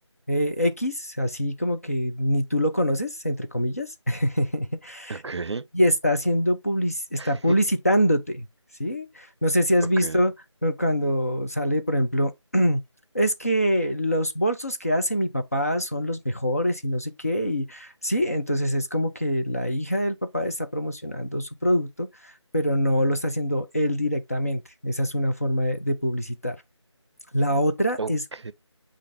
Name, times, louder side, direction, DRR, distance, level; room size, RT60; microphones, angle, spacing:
voice 1, 0.3-5.2 5.7-8.5 8.8-10.3 10.6-12.8 13.1-26.6 27.3-28.2, equal, 30° left, 0.4 m, -24 dB
voice 2, 5.1-5.7 7.2-7.6 9.8-10.2 28.0-28.5, right 4 dB, 65° right, 0.5 m, -33 dB
6.7 x 2.5 x 3.2 m
figure-of-eight pair, 170°, 16 cm